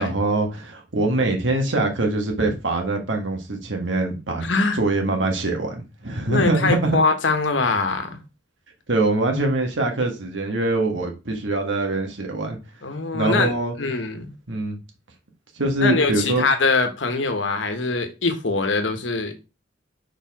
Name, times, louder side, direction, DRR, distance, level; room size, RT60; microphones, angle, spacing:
voice 1, 0.0-4.4 4.7-7.0 8.9-12.6 13.1-13.7 14.5-14.8 15.5-16.4, right 2 dB, 85° right, 1.5 m, -23 dB
voice 2, 4.4-4.8 6.3-8.2 12.8-13.5 13.8-14.3 15.8-19.3, left 3 dB, 90° left, 1.2 m, -22 dB
4.9 x 4.7 x 4.7 m
head